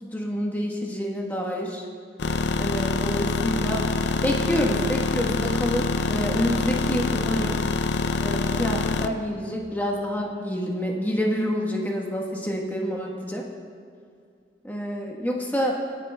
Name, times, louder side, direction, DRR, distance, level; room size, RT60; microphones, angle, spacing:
voice 1, 0.0-1.8 2.6-3.9 4.2-7.6 8.2-13.4 14.6-15.7, equal, 10° left, -1 dB, 1.1 m, -28 dB
sound 1, 2.2-9.1, left 3 dB, 85° left, 0.5 m, -25 dB
21.0 x 9.0 x 2.2 m, 2.3 s
head